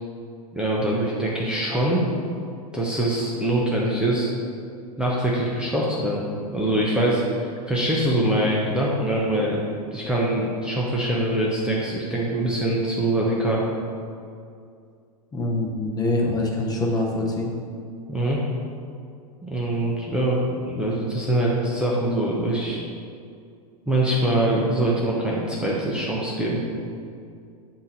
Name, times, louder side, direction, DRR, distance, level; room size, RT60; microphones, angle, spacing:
voice 1, 0.5-2.0 2.7-4.3 5.0-6.2 6.5-13.6 18.1-18.4 19.4-22.8 23.9-26.6, right 1 dB, 5° right, -5 dB, 0.8 m, -23 dB
voice 2, 15.3-17.5, left 2 dB, 20° left, -1 dB, 1.0 m, -24 dB
8.5 x 2.9 x 4.0 m, 2.3 s
hypercardioid pair, 105°, 20 cm